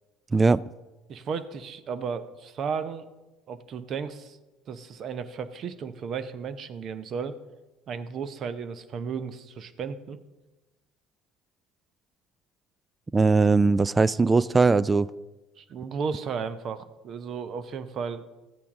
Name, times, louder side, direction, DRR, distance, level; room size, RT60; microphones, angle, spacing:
voice 1, 1.1-3.0 3.5-4.4 4.7-7.4 7.9-10.2 15.6-18.3, right 6 dB, 50° right, 12 dB, 0.8 m, -34 dB
voice 2, 13.1-15.1, right 4 dB, 25° right, 19 dB, 0.3 m, -20 dB
13.5 x 8.5 x 3.7 m, 1.1 s
hypercardioid pair, 60°, 0 cm